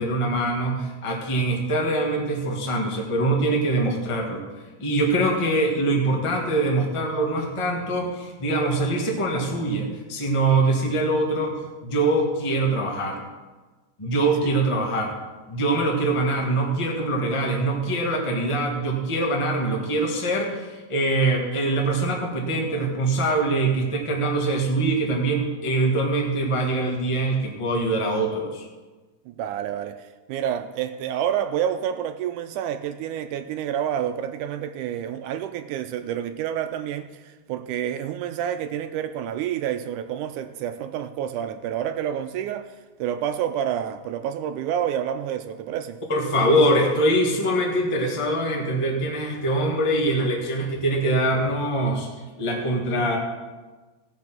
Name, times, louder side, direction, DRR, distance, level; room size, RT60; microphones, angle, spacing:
voice 1, 0.0-4.4 4.8-13.2 14.0-15.1 15.5-28.6 46.1-52.1 52.4-53.2, right 2 dB, 30° left, 0 dB, 0.5 m, -23 dB
voice 2, 29.3-46.0, right 9 dB, 80° right, 9 dB, 1.9 m, -29 dB
17.0 x 6.0 x 5.9 m, 1.3 s
omnidirectional pair, 3.8 m